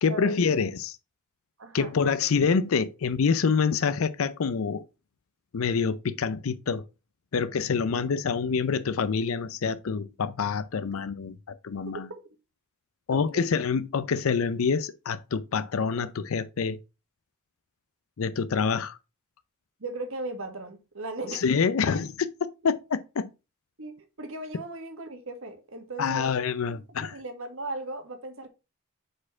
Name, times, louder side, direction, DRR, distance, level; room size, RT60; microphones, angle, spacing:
voice 1, 0.0-1.0 1.7-4.8 5.5-6.8 7.3-12.1 13.1-16.8 18.2-19.0 21.4-22.1 22.6-23.3 26.0-27.2, left 5 dB, 70° left, 0.5 m, -26 dB
voice 2, 1.6-1.9 12.1-12.2 13.1-13.4 19.8-21.4 23.8-26.3 27.0-28.5, right 2 dB, 70° right, 1.6 m, -37 dB
5.1 x 4.2 x 5.6 m
head